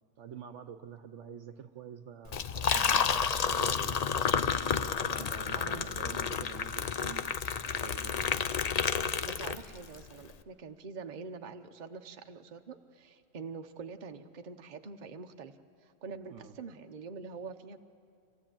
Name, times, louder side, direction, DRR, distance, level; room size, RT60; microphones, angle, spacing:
voice 1, 0.2-4.0 4.6-7.3 7.6-8.4 16.3-16.6, right 7 dB, 65° right, 10 dB, 1.1 m, -47 dB
Liquid, 2.3-10.0, left 6 dB, 50° left, 0.5 m, -30 dB
voice 2, 5.5-5.9 9.2-17.8, right 5 dB, 40° right, 6 dB, 0.9 m, -45 dB
25.0 x 16.5 x 8.9 m, 2.4 s
omnidirectional pair, 1.4 m